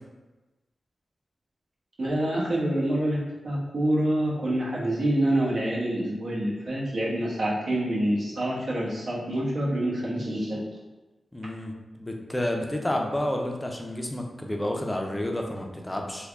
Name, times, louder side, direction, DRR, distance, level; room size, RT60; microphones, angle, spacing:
voice 1, 2.0-10.6, right 1 dB, 65° right, -6 dB, 1.0 m, -26 dB
voice 2, 11.3-16.3, left 1 dB, 15° left, 2 dB, 0.4 m, -30 dB
3.3 x 2.2 x 3.5 m, 1.2 s
wide cardioid pair, 95°, 0 cm